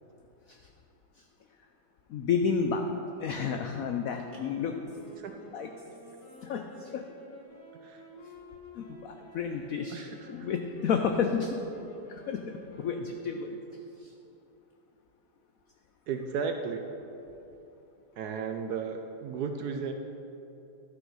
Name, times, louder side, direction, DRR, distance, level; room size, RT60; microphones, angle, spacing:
voice 1, 2.1-2.8 3.2-4.7 5.5-5.7 6.4-7.1 8.7-11.6 12.1-13.6 14.0-14.1, left 6 dB, 85° left, 5 dB, 0.7 m, -31 dB
sound 1, 3.6-14.0, left 1 dB, 30° left, 1.4 m, -51 dB
voice 2, 9.9-10.5 16.1-16.8 18.2-19.9, right 6 dB, 70° right, 5 dB, 0.9 m, -34 dB
11.5 x 6.0 x 5.5 m, 2.9 s
omnidirectional pair, 2.1 m